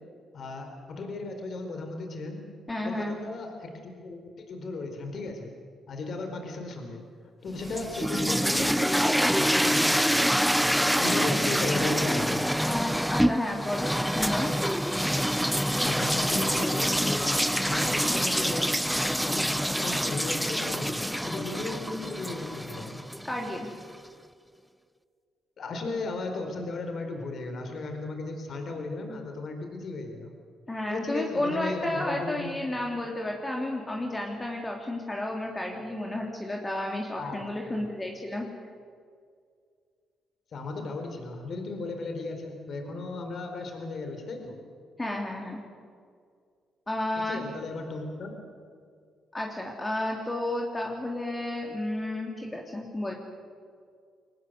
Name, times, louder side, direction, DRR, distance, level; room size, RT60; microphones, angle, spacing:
voice 1, 0.3-2.4 2.8-5.5 5.9-7.0 7.4-10.3 11.0-12.5 15.8-18.7 19.2-23.0 25.6-30.3 30.9-32.7 33.0-33.1 37.2-37.4 40.5-44.6 47.3-48.4, left 3 dB, 55° left, 5 dB, 4.4 m, -35 dB
voice 2, 2.7-3.2 12.7-14.5 23.2-23.7 30.7-38.5 45.0-45.6 46.9-47.4 49.3-53.1, left 1 dB, 20° left, 0 dB, 3.0 m, -32 dB
sound 1, 7.6-23.6, equal, ahead, 0.6 m, -26 dB
24.0 x 19.0 x 8.1 m, 2.1 s
cardioid pair, 90°, 0 cm